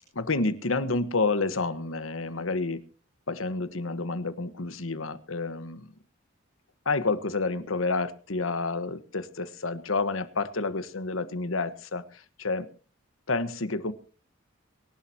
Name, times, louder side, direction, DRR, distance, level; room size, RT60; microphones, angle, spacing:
voice 1, 0.1-2.8 3.3-5.9 6.8-12.7 13.3-13.9, left 3 dB, 90° left, 1.4 m, -29 dB
25.0 x 11.5 x 2.9 m
head